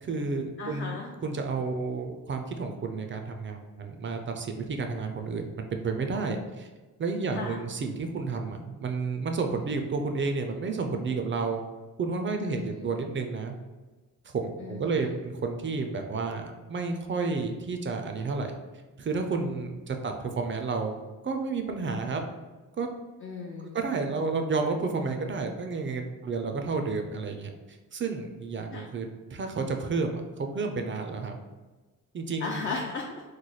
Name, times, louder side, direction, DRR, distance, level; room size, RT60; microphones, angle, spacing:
voice 1, 0.0-6.7 7.0-11.6 12.0-13.5 14.2-18.5 19.0-21.0 21.2-22.2 22.8-22.9 23.7-27.5 27.9-29.1 29.3-31.3 32.1-32.7, right 4 dB, 35° right, 4 dB, 0.4 m, -31 dB
voice 2, 0.6-1.1 7.3-7.6 12.4-12.9 14.6-15.2 23.2-23.8 28.7-28.9 32.4-33.2, left 4 dB, 40° left, 0 dB, 0.4 m, -36 dB
3.1 x 2.1 x 3.9 m, 1.3 s
wide cardioid pair, 120°, 33 cm